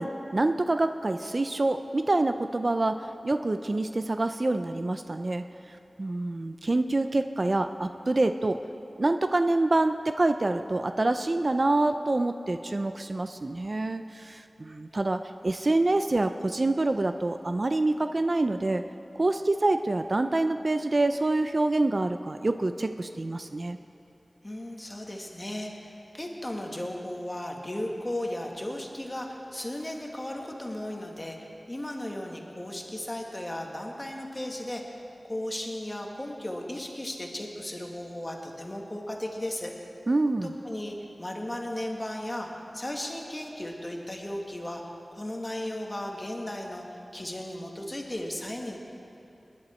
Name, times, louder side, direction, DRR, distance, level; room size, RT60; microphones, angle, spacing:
voice 1, 0.0-8.6 9.0-18.8 19.1-23.8 40.1-40.5, right 2 dB, 45° right, 8 dB, 0.4 m, -26 dB
voice 2, 24.4-35.0 35.2-39.7 40.4-44.8 45.1-48.8, left 1 dB, 25° left, 1 dB, 1.7 m, -36 dB
20.0 x 11.0 x 4.3 m, 2.9 s
wide cardioid pair, 75°, 0 cm